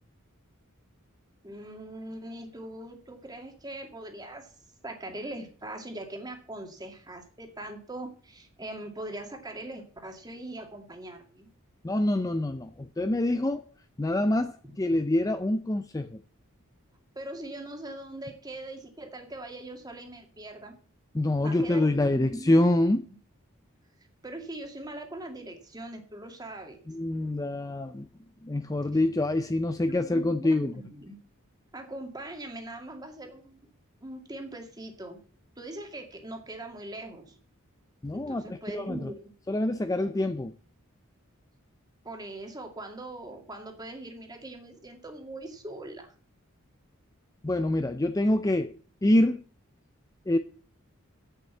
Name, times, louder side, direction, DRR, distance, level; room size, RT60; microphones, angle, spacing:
voice 1, 1.4-4.5 4.8-11.5 17.2-20.8 21.4-22.8 23.1-23.2 24.2-26.8 29.8-31.2 31.7-33.6 34.0-35.2 35.6-37.4 38.1-39.3 42.0-46.1, right 1 dB, 20° right, 2.2 m, -41 dB
voice 2, 11.8-13.6 14.0-16.2 21.1-23.1 26.9-28.1 28.4-30.7 38.0-39.1 39.5-40.5 47.4-49.4 50.3-50.4, left 1 dB, 15° left, 0.5 m, -26 dB
8.2 x 7.4 x 8.2 m
head